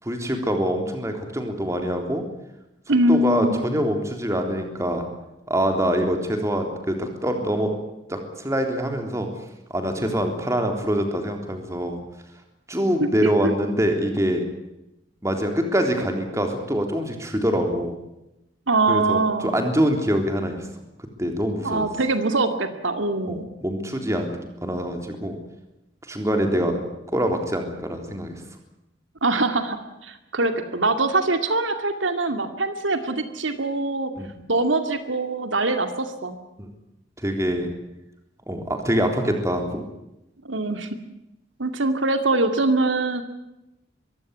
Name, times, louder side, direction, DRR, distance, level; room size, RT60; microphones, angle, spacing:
voice 1, 0.0-2.2 3.1-5.0 5.5-7.7 8.1-9.3 9.7-12.0 12.7-14.4 15.2-18.0 18.9-20.6 21.2-21.9 23.2-24.4 24.6-25.4 26.1-26.8 27.1-28.4 34.2-34.3 36.6-36.7 37.2-37.7 38.5-39.8, equal, 15° right, 4 dB, 3.6 m, -24 dB
voice 2, 2.9-3.6 13.2-13.5 18.7-19.6 21.6-23.5 29.2-34.1 34.5-36.4 40.4-40.9 41.6-43.2, right 2 dB, 85° right, 8 dB, 2.4 m, -23 dB
23.5 x 15.5 x 9.5 m, 0.92 s
head